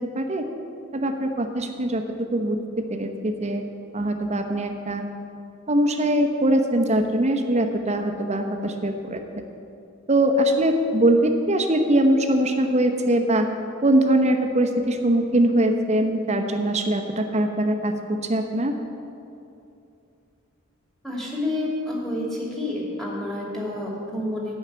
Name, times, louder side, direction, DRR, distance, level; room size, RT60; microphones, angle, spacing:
voice 1, 0.1-0.5 0.9-2.0 2.3-2.6 2.9-3.6 3.9-5.0 5.7-9.2 10.1-13.5 13.8-17.9 18.3-18.7, right 1 dB, 30° right, 5 dB, 0.9 m, -22 dB
voice 2, 21.0-24.6, left 1 dB, ahead, -4 dB, 2.4 m, -29 dB
9.8 x 6.4 x 8.8 m, 2.7 s
head